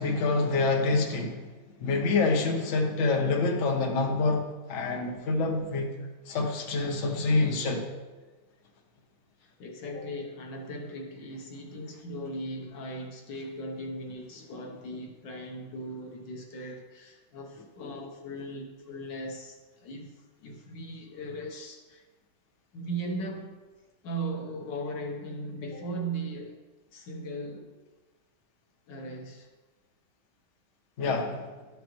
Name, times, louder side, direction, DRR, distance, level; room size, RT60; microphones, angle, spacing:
voice 1, 0.0-1.5 1.8-4.4 4.7-5.9 6.3-7.8 31.0-31.5, left 3 dB, 50° left, 2 dB, 1.1 m, -26 dB
voice 2, 9.4-22.0 22.7-23.6 24.0-26.6 26.9-27.7 28.9-29.5, right 1 dB, 75° left, 2 dB, 1.7 m, -38 dB
12.5 x 5.2 x 3.0 m, 1.2 s
omnidirectional pair, 2.0 m